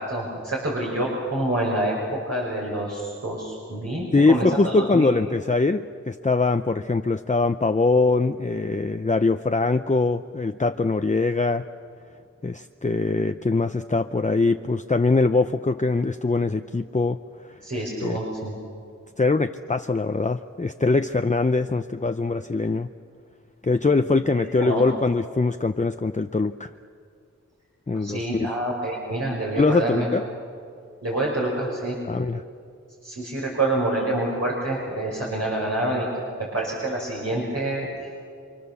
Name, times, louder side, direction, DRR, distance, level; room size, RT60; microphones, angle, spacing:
voice 1, 0.0-5.1 17.6-18.5 24.4-24.9 27.9-30.0 31.0-31.9 33.0-36.1 36.5-37.9, right 1 dB, 55° right, -4 dB, 6.0 m, -27 dB
voice 2, 4.1-11.7 12.4-17.5 18.0-18.2 19.2-22.9 23.6-26.7 27.9-28.5 29.6-30.3 32.0-32.4, left 3 dB, 25° left, 7 dB, 0.7 m, -22 dB
28.5 x 26.0 x 7.0 m, 2.3 s
wide cardioid pair, 45°, 30 cm